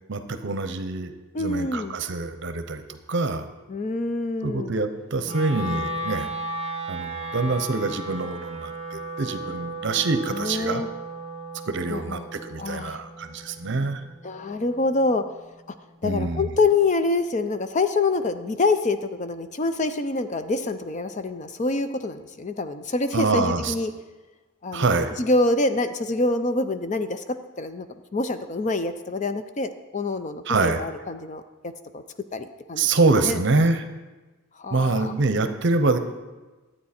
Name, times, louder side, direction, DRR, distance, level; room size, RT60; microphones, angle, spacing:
voice 1, 0.1-1.1 1.4-3.5 4.4-6.3 6.9-10.8 11.7-14.0 16.0-16.5 23.1-23.7 24.7-25.1 30.5-30.8 32.8-33.8 34.7-36.0, right 3 dB, 55° right, 9 dB, 0.8 m, -25 dB
voice 2, 1.3-2.0 3.7-4.7 10.3-10.9 11.9-12.2 12.6-13.0 14.2-15.2 15.7-15.8 16.0-23.9 24.6-27.2 27.6-32.0 32.3-32.9 33.2-33.4 34.6-35.1, left 3 dB, 35° left, 10 dB, 0.5 m, -26 dB
Wind instrument woodwind instrument, 5.2-15.4, right 1 dB, 30° right, 0.9 m, -35 dB
12.0 x 8.8 x 4.3 m, 1.2 s
head